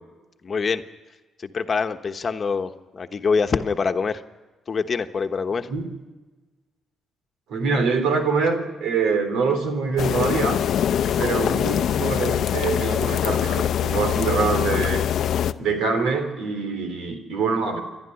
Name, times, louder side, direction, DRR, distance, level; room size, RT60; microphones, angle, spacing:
voice 1, 0.4-0.8 1.4-4.2 4.7-5.7, left 5 dB, 40° left, 7 dB, 1.1 m, -25 dB
voice 2, 7.5-10.6 11.2-15.0 15.6-17.8, right 4 dB, 85° right, 6 dB, 3.5 m, -24 dB
sound 1, 10.0-15.5, left 9 dB, 70° left, 0.6 m, -23 dB
28.5 x 11.5 x 9.9 m, 1.2 s
cardioid pair, 90°, 0 cm